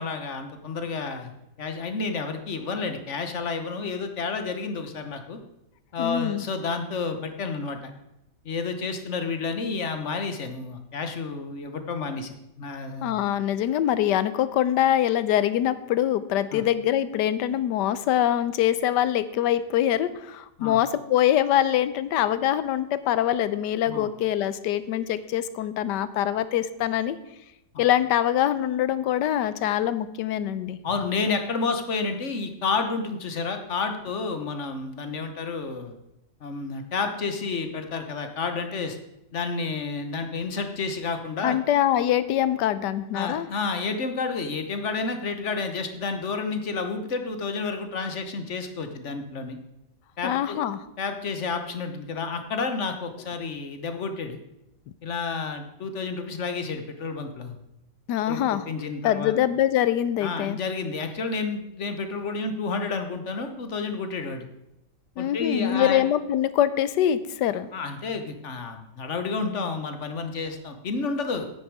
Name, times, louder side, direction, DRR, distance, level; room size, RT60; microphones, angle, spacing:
voice 1, 0.0-1.3 1.6-5.4 5.9-7.9 8.4-13.2 16.5-16.6 20.6-20.8 23.9-24.1 27.7-27.8 30.8-35.9 36.4-39.0 39.3-41.6 43.1-49.6 50.2-50.6 51.0-54.4 55.0-57.6 58.3-59.3 60.2-64.4 65.2-66.1 67.7-71.4, left 4 dB, 50° left, 7 dB, 1.2 m, -30 dB
voice 2, 6.0-6.4 13.0-27.2 27.8-30.8 41.4-43.5 50.2-50.8 58.1-58.7 59.0-60.6 65.2-67.7, left 11 dB, 90° left, 14 dB, 1.3 m, -24 dB
9.4 x 9.1 x 4.7 m, 0.87 s
omnidirectional pair, 1.8 m